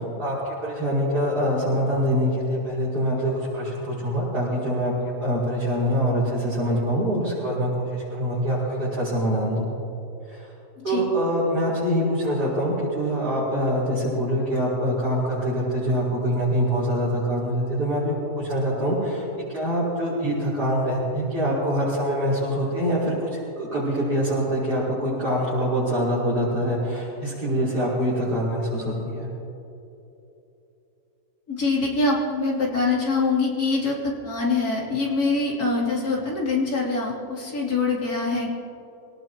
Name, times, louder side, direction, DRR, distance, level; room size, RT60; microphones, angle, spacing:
voice 1, 0.0-9.7 10.3-10.5 10.8-23.3 23.6-29.3, equal, 75° right, -10 dB, 4.9 m, -24 dB
voice 2, 31.5-38.5, left 3 dB, 65° left, -5 dB, 3.7 m, -24 dB
24.5 x 18.0 x 3.0 m, 2.9 s
omnidirectional pair, 1.7 m